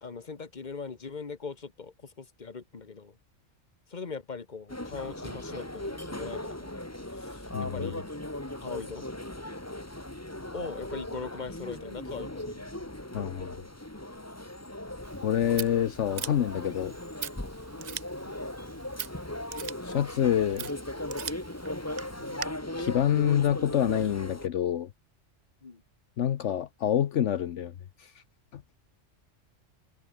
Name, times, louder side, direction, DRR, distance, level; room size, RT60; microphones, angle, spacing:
voice 1, 0.0-3.2 3.9-6.7 7.1-8.1 8.6-9.1 10.5-12.9 17.8-18.0 25.6-25.8, left 5 dB, 35° left, 1.6 m, -41 dB
sound 1, 4.7-24.5, left 1 dB, 10° left, 2.0 m, -38 dB
voice 2, 7.5-7.9 13.1-13.5 15.2-16.9 19.8-20.7 22.8-24.9 26.2-27.7 28.0-28.1 28.5-28.6, left 10 dB, 70° left, 1.1 m, -27 dB
Scissors, 15.0-22.5, right 9 dB, 50° right, 0.5 m, -42 dB
omnidirectional pair, 1.3 m